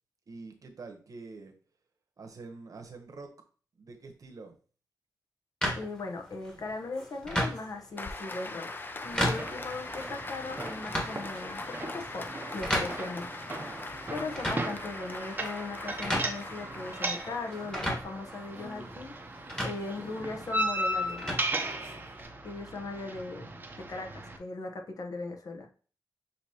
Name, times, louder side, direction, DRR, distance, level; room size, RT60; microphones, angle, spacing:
voice 1, 0.3-1.5 2.2-3.3 3.7-4.6, right 3 dB, 55° right, 4 dB, 1.0 m, -46 dB
sound 1, 5.6-22.2, equal, 10° left, 1.5 m, -37 dB
voice 2, 5.8-8.7 9.0-13.3 14.1-19.1 19.6-21.3 22.4-23.5 23.8-25.7, left 3 dB, 55° left, 3 dB, 0.9 m, -38 dB
Applause, 8.0-18.0, left 2 dB, 30° left, 0.5 m, -41 dB
sound 2, 9.4-24.4, right 1 dB, 25° right, 0.7 m, -37 dB
6.5 x 2.9 x 2.9 m, 0.39 s
wide cardioid pair, 95°, 7 cm